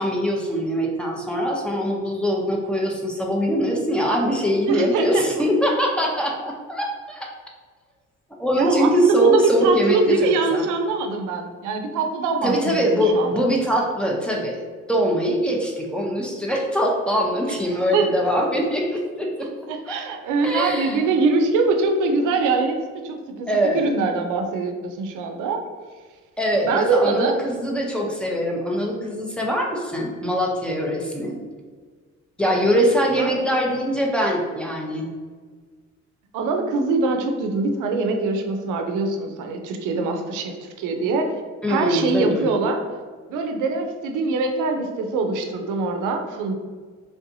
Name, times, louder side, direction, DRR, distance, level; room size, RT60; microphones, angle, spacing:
voice 1, 0.0-7.3 8.4-10.6 12.4-14.6 14.9-19.3 19.9-20.0 20.4-21.0 23.5-23.8 26.4-31.4 32.4-35.1 41.6-42.5, equal, 5° left, -1 dB, 0.6 m, -22 dB
voice 2, 4.7-5.4 8.5-13.5 17.4-18.1 19.4-23.5 23.7-25.6 26.7-27.4 33.1-33.4 36.3-41.3 41.7-42.8 43.3-46.5, right 3 dB, 85° right, 4 dB, 0.5 m, -23 dB
3.4 x 2.6 x 2.6 m, 1.5 s
cardioid pair, 90°, 30 cm